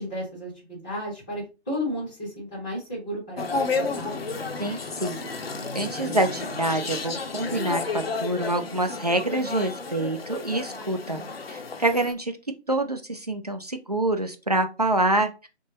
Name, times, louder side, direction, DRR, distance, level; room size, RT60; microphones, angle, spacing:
voice 1, 0.0-3.6 3.9-4.2, equal, 5° left, -16 dB, 0.6 m, -33 dB
sound 1, 3.4-12.1, left 4 dB, 60° left, 0.7 m, -32 dB
voice 2, 4.6-5.2 5.7-11.2 11.5-12.3 12.7-15.5, right 2 dB, 35° right, 6 dB, 0.4 m, -26 dB
3.6 x 2.0 x 3.8 m, 0.29 s
figure-of-eight pair, 155°, 34 cm